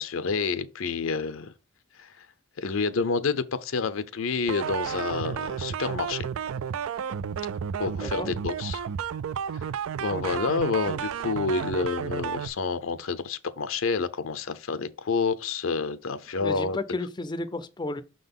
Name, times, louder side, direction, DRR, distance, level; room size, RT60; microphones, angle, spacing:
voice 1, 0.0-1.5 2.0-2.1 2.6-6.3 7.8-8.9 10.0-16.8, left 4 dB, 75° left, 0.6 m, -28 dB
sound 1, 4.5-12.5, right 7 dB, 85° right, 0.3 m, -32 dB
voice 2, 16.4-18.0, left 2 dB, 20° left, 0.4 m, -32 dB
6.2 x 3.9 x 5.3 m
head